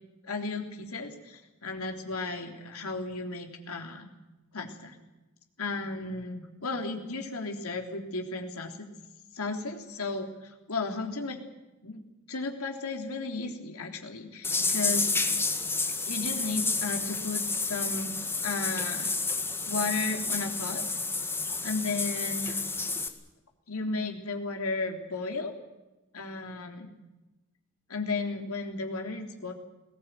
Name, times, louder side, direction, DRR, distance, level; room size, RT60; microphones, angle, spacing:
voice 1, 0.2-4.1 4.5-5.0 5.6-8.9 9.3-11.4 11.8-12.0 12.3-15.1 16.0-18.2 18.4-19.1 19.7-20.8 21.6-22.6 23.7-25.5 26.1-26.9 27.9-29.5, left 3 dB, 80° left, 3 dB, 3.4 m, -34 dB
sound 1, 14.4-23.1, left 3 dB, 10° left, 1.9 m, -30 dB
21.0 x 18.5 x 9.1 m, 1.1 s
head